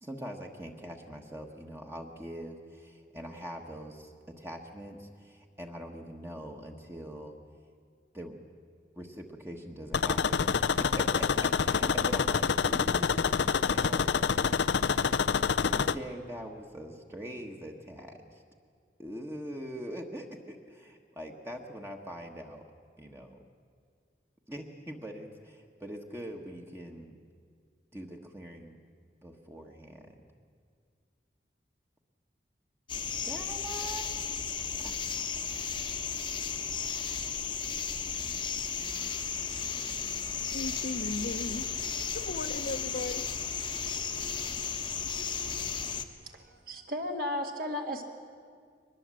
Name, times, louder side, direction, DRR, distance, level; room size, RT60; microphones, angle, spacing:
voice 1, 0.0-7.3 8.1-8.4 9.0-14.6 15.1-18.4 19.0-22.6 23.0-23.4 24.5-27.2 27.9-28.8 29.2-30.2 33.2-34.1 34.8-34.9, equal, 15° right, 2 dB, 1.3 m, -43 dB
sound 1, 9.9-15.9, left 6 dB, 75° left, 0.5 m, -27 dB
sound 2, 32.9-46.1, left 6 dB, 25° left, 1.0 m, -34 dB
voice 2, 40.5-41.7 42.1-43.3, left 2 dB, 60° left, 11 dB, 0.9 m, -36 dB
voice 3, 46.2-48.0, left 1 dB, 55° right, 3 dB, 2.1 m, -35 dB
23.0 x 20.0 x 7.6 m, 2.1 s
head